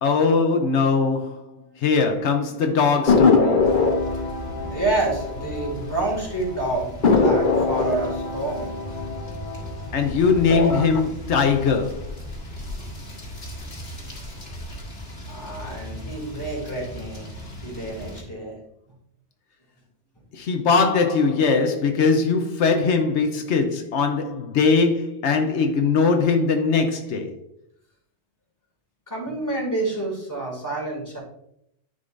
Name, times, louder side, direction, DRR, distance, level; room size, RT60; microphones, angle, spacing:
voice 1, 0.0-1.4 1.8-3.8 9.9-12.1 20.3-27.4, left 4 dB, 85° left, 1.1 m, -21 dB
sound 1, 3.1-6.1 6.4-6.5 7.0-10.0 10.4-11.0, left 4 dB, 50° left, 1.1 m, -22 dB
sound 2, 3.6-18.2, equal, 65° left, 1.8 m, -37 dB
voice 2, 4.3-8.8 15.3-17.3 17.6-18.6 29.1-31.2, right 2 dB, 15° left, 2.4 m, -29 dB
9.8 x 5.4 x 2.6 m
omnidirectional pair, 1.1 m